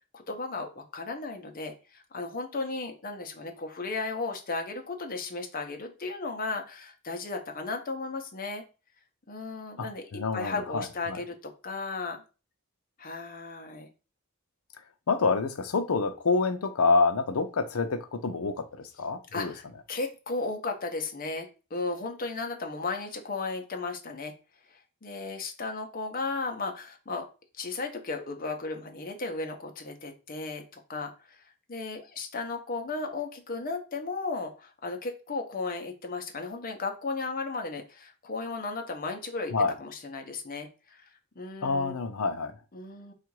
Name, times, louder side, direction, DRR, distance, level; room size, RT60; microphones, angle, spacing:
voice 1, 0.1-8.6 9.3-12.2 13.0-13.9 19.3-24.3 25.0-27.2 27.6-31.4 31.7-41.1 41.4-42.0 42.7-43.1, left 3 dB, 40° left, 0.7 m, -35 dB
voice 2, 9.8-11.2 15.1-19.5 39.5-39.7 41.6-42.6, left 4 dB, 75° left, 0.6 m, -27 dB
3.7 x 2.4 x 4.6 m
head